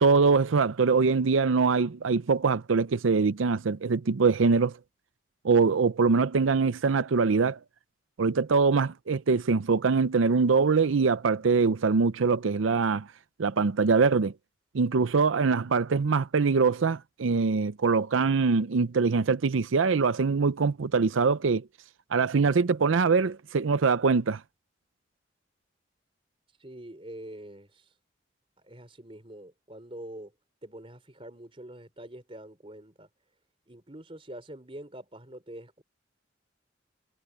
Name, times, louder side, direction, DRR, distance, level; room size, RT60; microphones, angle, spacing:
voice 1, 0.0-4.8 5.4-7.6 8.2-13.1 13.4-14.3 14.7-21.6 22.1-24.4, right 4 dB, 90° right, 0.6 m, -23 dB
voice 2, 26.5-28.0 28.6-30.3 30.6-33.1 33.7-35.8, right 1 dB, 30° right, 3.9 m, -45 dB
head